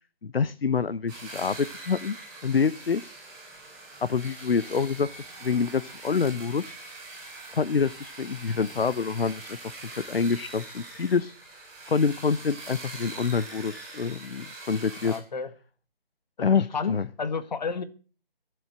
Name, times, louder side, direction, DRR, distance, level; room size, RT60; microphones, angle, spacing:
voice 1, 0.2-2.2 2.4-3.1 4.0-6.7 7.5-9.6 9.9-11.3 11.8-15.1 16.4-17.0, left 5 dB, 75° left, 0.9 m, -26 dB
sound 1, 1.1-15.2, right 2 dB, 15° right, 6.8 m, -43 dB
voice 2, 15.0-15.5 16.4-17.8, left 5 dB, 45° left, 1.4 m, -31 dB
22.0 x 8.0 x 7.7 m
figure-of-eight pair, 160°, 29 cm